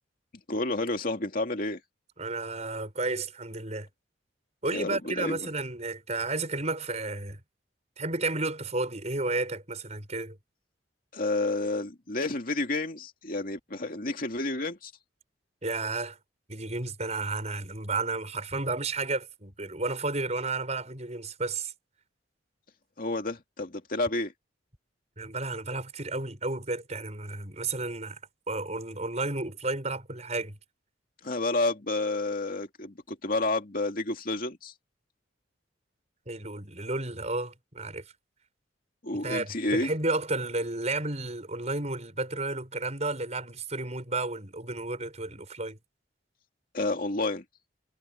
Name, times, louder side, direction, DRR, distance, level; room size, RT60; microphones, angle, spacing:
voice 1, 0.5-1.8 4.7-5.4 11.1-14.9 23.0-24.3 31.2-34.7 39.0-39.9 46.7-47.4, left 2 dB, 50° left, 2.5 m, -30 dB
voice 2, 2.2-3.9 4.6-7.4 8.0-10.4 15.6-16.2 16.5-21.7 25.2-28.2 28.5-30.6 36.3-38.0 39.2-45.8, right 3 dB, 35° right, 6.2 m, -32 dB
head